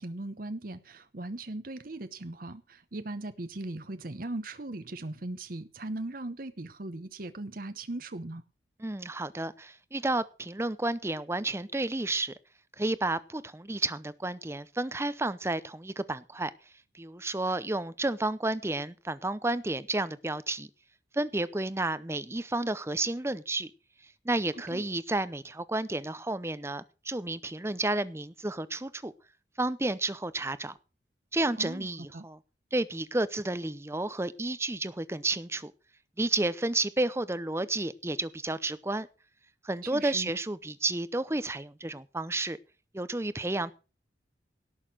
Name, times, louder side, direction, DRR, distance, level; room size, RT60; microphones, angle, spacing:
voice 1, 0.0-8.4 24.5-24.8 31.6-32.3 39.8-40.3, right 2 dB, 50° right, 0.9 m, -39 dB
voice 2, 8.8-12.3 12.8-16.5 16.9-20.7 21.1-23.7 24.2-29.1 29.6-30.7 31.3-32.4 32.7-35.7 36.2-39.1 39.6-42.6 42.9-43.7, right 2 dB, 15° right, 0.6 m, -31 dB
17.5 x 6.5 x 6.4 m
head